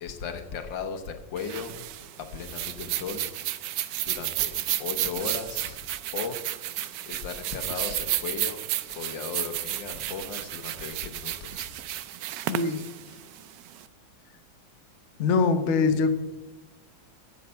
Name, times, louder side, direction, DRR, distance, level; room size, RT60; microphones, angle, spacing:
voice 1, 0.0-1.9 2.3-3.3 4.1-6.4 7.1-8.6 8.9-11.8 13.1-13.2, left 6 dB, 70° left, 8 dB, 1.8 m, -36 dB
sound 1, 1.4-13.8, right 13 dB, 80° right, 0.8 m, -32 dB
voice 2, 12.5-12.8 15.2-16.1, left 4 dB, 55° left, 8 dB, 0.8 m, -23 dB
13.0 x 8.2 x 5.6 m, 1.1 s
omnidirectional pair, 2.1 m